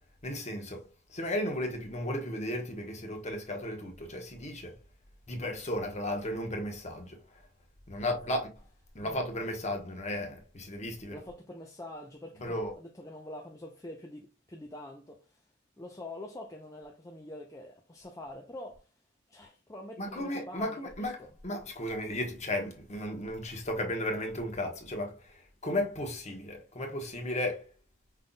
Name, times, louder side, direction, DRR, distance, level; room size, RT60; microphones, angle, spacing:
voice 1, 0.2-4.7 5.3-7.2 7.9-8.5 8.9-11.2 12.4-12.7 20.0-21.2 21.4-27.7, left 1 dB, 35° left, 1.1 m, -34 dB
voice 2, 11.1-15.4 15.8-18.8 19.3-21.3, left 1 dB, 15° left, 0.5 m, -45 dB
5.3 x 4.0 x 2.3 m
head